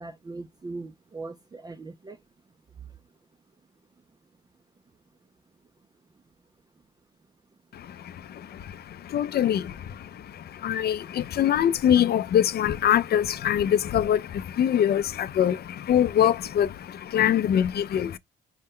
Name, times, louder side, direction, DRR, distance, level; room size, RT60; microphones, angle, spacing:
voice 1, 0.0-2.2, right 3 dB, 20° right, 0.4 m, -39 dB
voice 2, 7.7-18.2, left 10 dB, 55° left, 0.4 m, -24 dB
5.4 x 2.2 x 3.6 m
cardioid pair, 90°, 20 cm